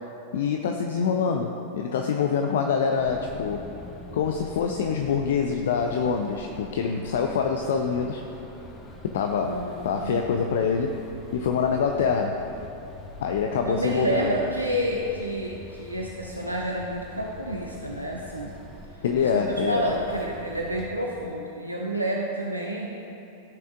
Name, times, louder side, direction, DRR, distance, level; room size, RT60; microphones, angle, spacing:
voice 1, 0.3-3.7 4.1-8.2 9.0-11.0 11.3-12.4 13.2-14.4 19.0-19.9, left 6 dB, 60° left, 4 dB, 0.4 m, -25 dB
sound 1, 3.0-21.1, left 1 dB, 25° left, 1.3 m, -44 dB
voice 2, 9.4-10.2 13.7-18.5 19.2-22.9, right 1 dB, 85° right, -1 dB, 0.6 m, -29 dB
15.0 x 5.8 x 2.5 m, 2.9 s
figure-of-eight pair, 90°, 0 cm